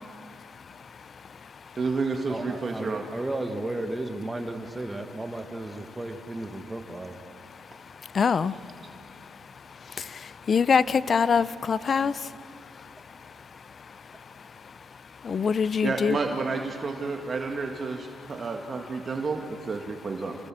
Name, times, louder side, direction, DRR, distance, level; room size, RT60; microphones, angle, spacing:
voice 1, 1.8-3.0 15.8-20.4, right 4 dB, 40° right, 3 dB, 1.8 m, -30 dB
voice 2, 2.3-7.2, right 2 dB, 15° right, 5 dB, 1.6 m, -34 dB
voice 3, 8.2-8.5 10.5-12.1 15.3-16.2, left 6 dB, 45° left, 17 dB, 0.6 m, -23 dB
28.0 x 18.5 x 7.6 m, 2.3 s
cardioid pair, 90°, 0 cm